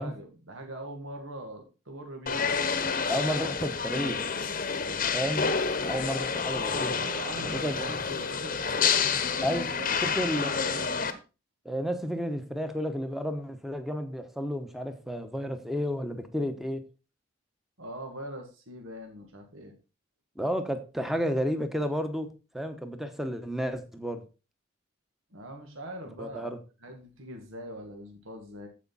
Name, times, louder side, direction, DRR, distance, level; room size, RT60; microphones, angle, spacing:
voice 1, 0.0-2.4 7.0-9.0 9.5-10.9 17.8-19.7 25.3-26.5 26.8-28.7, right 1 dB, 80° right, 3 dB, 2.1 m, -42 dB
sound 1, 2.3-11.1, left 5 dB, 40° left, 1.0 m, -29 dB
voice 2, 3.1-4.3 4.9-5.5 5.8-7.0 7.4-7.9 9.4-9.7 10.0-10.9 11.6-16.8 20.4-22.3 22.5-24.2 26.1-26.6, equal, ahead, 8 dB, 1.0 m, -32 dB
14.5 x 5.1 x 4.1 m, 0.31 s
head